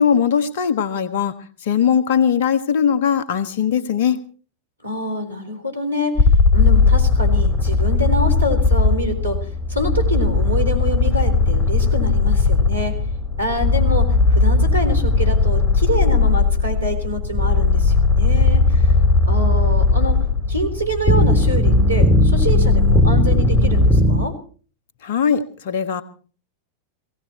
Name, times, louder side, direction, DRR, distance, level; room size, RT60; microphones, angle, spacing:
voice 1, 0.0-1.3 1.6-4.2 25.0-26.0, left 7 dB, 55° left, 12 dB, 1.4 m, -19 dB
voice 2, 4.8-6.3 6.5-13.0 13.4-18.9 19.3-20.2 20.5-24.3, equal, 85° right, 5 dB, 3.8 m, -26 dB
sound 1, 6.2-24.3, left 3 dB, 20° left, 3.1 m, -17 dB
18.0 x 17.5 x 4.4 m, 0.41 s
figure-of-eight pair, 90°, 0 cm